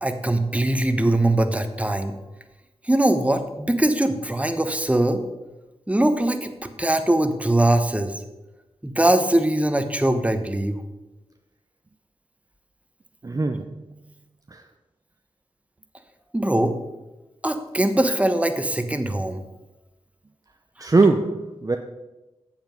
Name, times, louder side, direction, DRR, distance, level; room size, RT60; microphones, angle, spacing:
voice 1, 0.0-2.2 2.8-5.2 5.9-8.1 8.8-10.8 16.3-16.8 17.4-19.4 20.8-20.9, right 1 dB, 10° right, 1.0 m, -21 dB
voice 2, 13.2-13.7 14.5-14.6 20.8-21.8, right 3 dB, 30° right, 0.6 m, -21 dB
7.9 x 7.0 x 5.2 m
cardioid pair, 45°, 11 cm